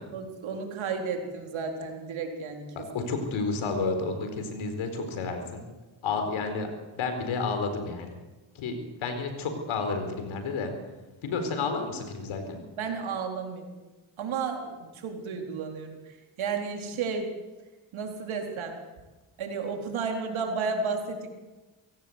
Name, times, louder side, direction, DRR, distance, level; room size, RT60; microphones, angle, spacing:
voice 1, 0.1-2.7 12.8-13.9 14.2-16.0 16.4-17.3 17.9-18.8 19.4-21.3, right 5 dB, 85° right, 3 dB, 4.0 m, -32 dB
voice 2, 2.8-5.6 6.0-6.7 6.9-8.2 8.5-10.7 11.2-12.6, left 4 dB, 85° left, 7 dB, 4.5 m, -31 dB
24.0 x 17.0 x 8.1 m, 1.2 s
cardioid pair, 65°, 47 cm